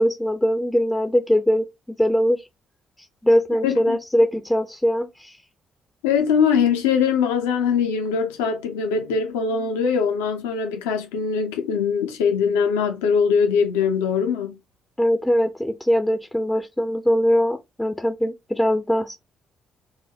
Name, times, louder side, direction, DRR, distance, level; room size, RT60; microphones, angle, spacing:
voice 1, 0.0-2.4 3.2-5.4 15.0-19.2, equal, 5° left, 0.4 m, -21 dB
voice 2, 3.6-4.0 6.0-14.6, left 6 dB, 70° left, 0.5 m, -22 dB
3.9 x 2.1 x 2.7 m
figure-of-eight pair, 40°, 0 cm